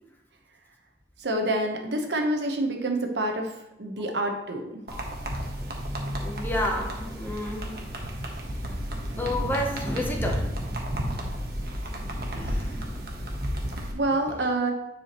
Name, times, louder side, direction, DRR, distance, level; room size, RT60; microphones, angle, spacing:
voice 1, 1.2-3.5 3.8-4.7 13.9-14.7, right 1 dB, 80° right, 1.0 m, -27 dB
sound 1, 4.9-13.9, equal, 55° right, 1.1 m, -32 dB
voice 2, 6.2-7.8 9.2-10.5 10.9-11.0 12.3-12.9, left 1 dB, 10° left, 0.7 m, -31 dB
9.4 x 4.8 x 3.0 m
head